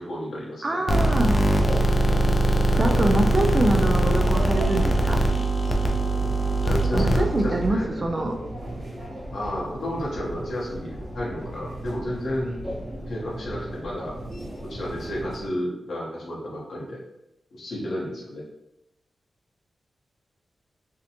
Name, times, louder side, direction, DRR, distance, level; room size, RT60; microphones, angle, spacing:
voice 1, 0.0-0.8 6.6-8.0 9.3-12.6 13.1-14.1 14.6-17.0 17.5-18.4, equal, 75° left, -4 dB, 0.8 m, -32 dB
voice 2, 0.6-1.4 2.7-5.2 6.9-8.4, right 1 dB, 35° right, 4 dB, 0.3 m, -25 dB
sound 1, 0.9-7.7, right 1 dB, 40° left, 0.3 m, -22 dB
sound 2, 1.4-15.5, right 1 dB, 15° right, 0.9 m, -36 dB
2.6 x 2.1 x 2.7 m, 0.86 s
wide cardioid pair, 100°, 0 cm